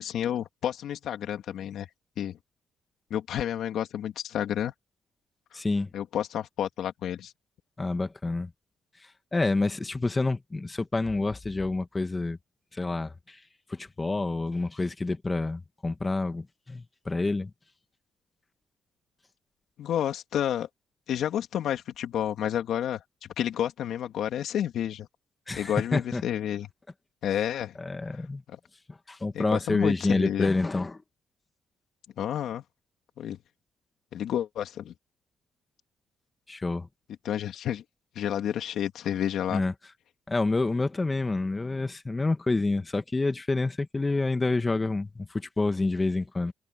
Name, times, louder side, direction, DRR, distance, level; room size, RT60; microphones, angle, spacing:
voice 1, 0.0-1.9 2.2-2.4 3.1-4.7 5.9-7.3 19.8-20.7 21.1-25.1 25.6-26.7 27.2-27.8 29.3-30.5 32.2-32.6 33.2-33.4 34.1-34.9 37.2-37.8 38.1-39.6, left 10 dB, 75° left, 2.7 m, -30 dB
voice 2, 5.5-5.9 7.8-8.5 9.0-12.4 12.7-13.4 13.7-17.5 25.5-26.2 27.8-28.4 28.9-31.0 36.5-36.9 39.5-39.7 40.3-46.5, left 3 dB, 20° left, 1.9 m, -28 dB
cardioid pair, 90°, 0 cm